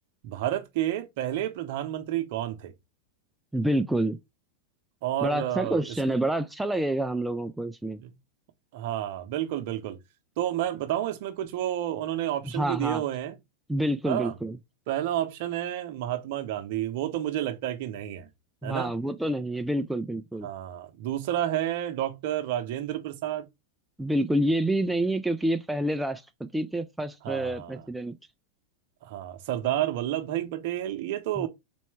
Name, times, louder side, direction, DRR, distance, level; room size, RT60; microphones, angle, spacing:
voice 1, 0.2-2.7 5.0-5.8 8.7-10.0 10.4-13.3 14.1-14.3 14.9-18.3 18.6-18.9 20.4-23.5 27.2-27.8 29.0-31.5, right 12 dB, 50° right, 0.8 m, -30 dB
voice 2, 3.5-4.2 5.2-8.0 12.4-13.0 13.7-14.6 18.6-20.5 24.0-28.2 31.4-31.5, right 1 dB, 5° right, 0.4 m, -28 dB
4.2 x 3.1 x 3.2 m
figure-of-eight pair, 90°, 0 cm